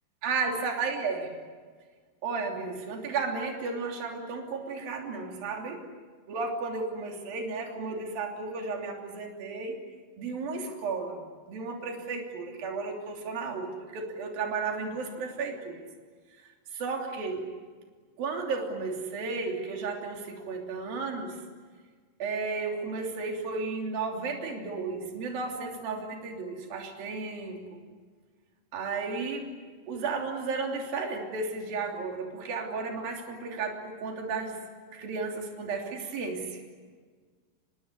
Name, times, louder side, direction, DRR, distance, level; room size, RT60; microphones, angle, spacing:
voice 1, 0.2-1.3 2.2-5.8 6.3-9.8 10.2-15.8 16.7-17.4 18.2-21.4 22.2-27.8 28.7-29.5 29.9-34.6 34.9-36.6, right 4 dB, 65° right, 1 dB, 4.8 m, -33 dB
25.0 x 22.0 x 9.7 m, 1.5 s
omnidirectional pair, 4.6 m